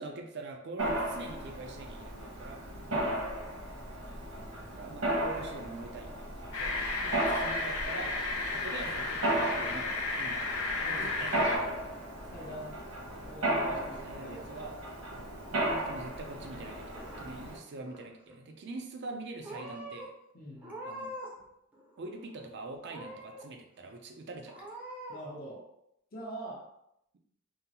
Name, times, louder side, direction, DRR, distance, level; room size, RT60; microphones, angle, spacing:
voice 1, 0.0-2.6 4.7-6.8 7.0-8.2 8.5-11.9 14.0-14.8 15.1-20.1 20.8-21.1 22.0-24.6, right 3 dB, 55° right, 3 dB, 0.4 m, -44 dB
Mechanisms, 0.8-17.6, right 1 dB, 85° right, 1.2 m, -35 dB
voice 2, 2.9-3.2 10.8-11.7 12.3-12.8 13.2-14.6 17.4-17.5 20.3-20.7 25.1-25.6 26.1-26.6, right 1 dB, 45° left, -3 dB, 0.8 m, -44 dB
sound 1, 6.5-11.6, left 3 dB, 85° left, 0.7 m, -33 dB
Purr / Meow, 16.7-17.5 17.8-18.4 19.0-19.2 19.4-20.1 20.6-21.4 21.7-22.5 22.9-23.5 23.9-24.0 24.5-25.2, right 1 dB, 5° right, 0.6 m, -44 dB
3.7 x 2.0 x 2.8 m, 0.80 s
head